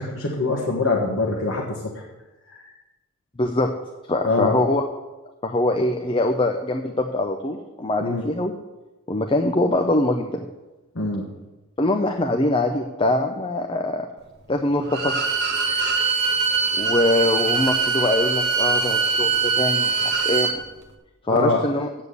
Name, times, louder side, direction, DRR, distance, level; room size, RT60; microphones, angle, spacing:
voice 1, 0.0-2.0 2.5-2.7 4.2-4.6 8.0-8.2 10.9-11.3 15.7-15.9 21.3-21.6, left 3 dB, 60° left, -2 dB, 1.5 m, -24 dB
voice 2, 3.4-3.7 4.1-4.8 5.4-8.5 9.1-10.4 11.8-14.1 14.5-15.2 16.7-20.6 21.3-21.9, left 1 dB, 25° left, 4 dB, 0.6 m, -23 dB
Bowed string instrument, 14.9-20.6, right 5 dB, 50° right, 1.2 m, -22 dB
8.4 x 7.3 x 8.2 m, 1.1 s
head